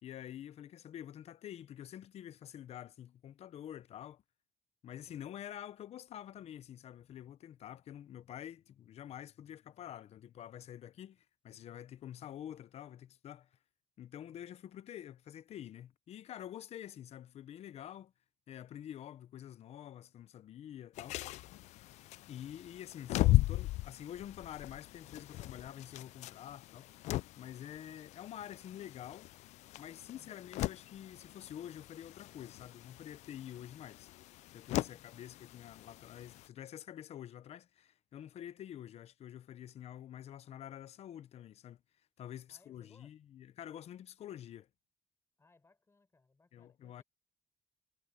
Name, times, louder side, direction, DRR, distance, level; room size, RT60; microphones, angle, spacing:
voice 1, 0.0-4.2 4.8-13.5 14.0-18.1 18.5-21.2 22.3-27.1 27.4-29.3 29.8-34.1 34.5-41.8 42.2-44.7 46.5-47.0, left 11 dB, 70° left, 0.8 m, -48 dB
sound 1, 21.0-36.5, left 17 dB, 90° left, 0.4 m, -38 dB
voice 2, 30.1-30.4 34.8-35.2 42.5-43.2 45.4-47.0, left 3 dB, 25° left, 4.8 m, -68 dB
cardioid pair, 95°, 11 cm